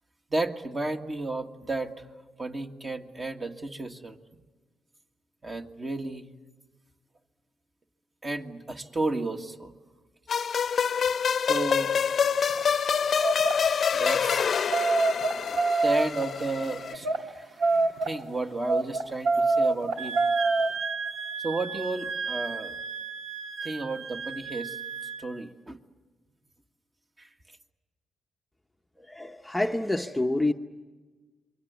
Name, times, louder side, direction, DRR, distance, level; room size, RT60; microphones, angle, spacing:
voice 1, 0.3-2.1 2.4-4.2 5.4-6.2 8.2-9.7 11.4-12.0 13.9-20.2 21.4-22.8 23.6-24.8 25.2-25.8 27.2-27.3, right 2 dB, 25° right, 4 dB, 1.9 m, -33 dB
sound 1, 10.3-16.9, left 7 dB, 50° left, 0.8 m, -26 dB
sound 2, 11.5-11.8 12.4-12.6 13.2-13.6 14.2-16.3 16.9-17.2 17.6-18.2 18.7-20.7, right 3 dB, 75° right, 2.5 m, -25 dB
Wind instrument woodwind instrument, 20.0-25.3, right 5 dB, 55° right, 1.7 m, -35 dB
voice 2, 29.1-30.5, left 2 dB, 5° left, 3 dB, 1.0 m, -27 dB
28.0 x 23.5 x 8.2 m, 1.3 s
cardioid pair, 90°, 0 cm